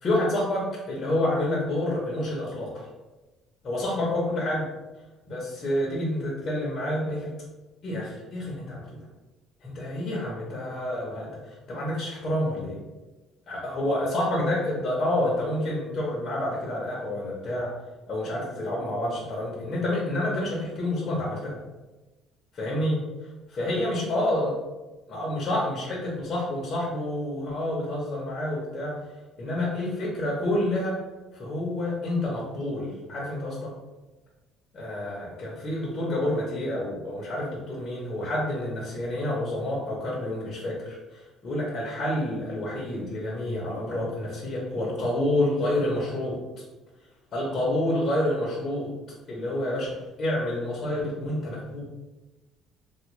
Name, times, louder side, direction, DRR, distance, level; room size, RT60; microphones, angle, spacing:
voice 1, 0.0-2.9 3.6-4.7 5.3-7.3 7.8-8.9 9.6-12.8 13.5-17.7 18.1-21.6 22.5-23.0 23.6-24.5 25.1-29.0 29.4-31.0 31.3-33.7 34.7-46.4 47.3-48.9 49.3-51.8, left 1 dB, 30° left, -5 dB, 0.7 m, -28 dB
3.4 x 2.2 x 3.1 m, 1.1 s
cardioid pair, 170°, 0 cm